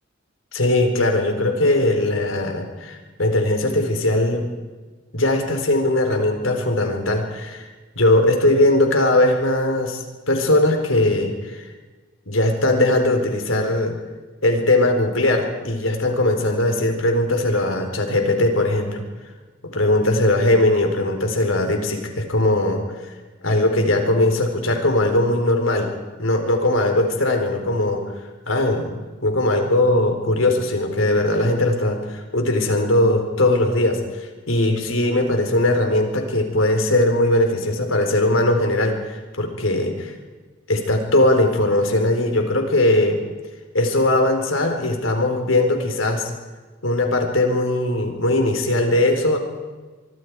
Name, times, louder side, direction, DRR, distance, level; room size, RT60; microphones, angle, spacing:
voice 1, 0.5-4.5 5.1-7.7 8.0-10.0 10.3-11.6 12.3-13.9 14.4-19.0 19.7-22.8 23.4-28.1 28.5-28.9 29.2-40.1 40.7-43.2 43.7-46.3 46.8-49.4, left 1 dB, 85° left, 4 dB, 4.2 m, -20 dB
25.0 x 24.0 x 4.8 m, 1.3 s
head